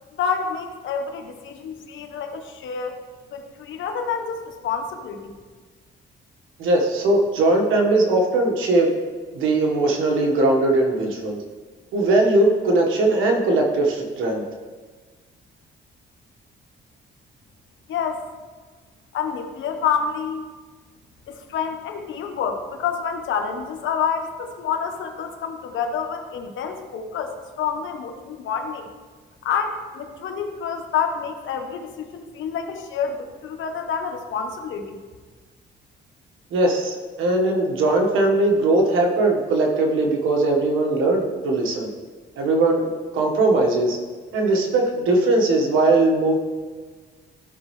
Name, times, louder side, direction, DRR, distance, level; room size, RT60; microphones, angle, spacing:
voice 1, 0.2-3.0 3.3-5.3 17.9-18.3 19.1-20.4 21.3-28.9 29.4-35.0, left 6 dB, 75° left, 5 dB, 1.1 m, -28 dB
voice 2, 6.6-8.9 9.3-11.4 11.9-14.4 36.5-41.9 42.4-44.0 44.3-46.4, right 2 dB, 85° right, 1 dB, 1.5 m, -20 dB
14.0 x 5.3 x 3.2 m, 1.4 s
cardioid pair, 90°, 20 cm